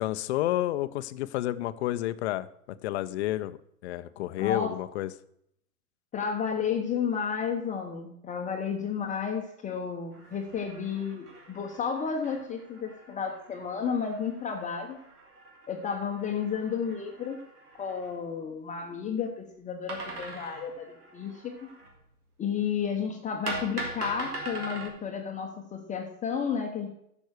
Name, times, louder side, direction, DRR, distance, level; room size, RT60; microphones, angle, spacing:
voice 1, 0.0-2.5 2.8-3.5 3.8-5.1, left 15 dB, 45° left, 14 dB, 0.7 m, -30 dB
voice 2, 4.4-4.8 6.1-15.0 15.7-17.4 17.7-21.7 22.4-26.9, left 6 dB, 15° left, 3 dB, 1.0 m, -32 dB
sound 1, 10.1-18.2 19.9-22.0 23.5-24.9, right 2 dB, 80° right, 3.1 m, -42 dB
10.5 x 6.3 x 6.4 m, 0.73 s
hypercardioid pair, 120°, 45 cm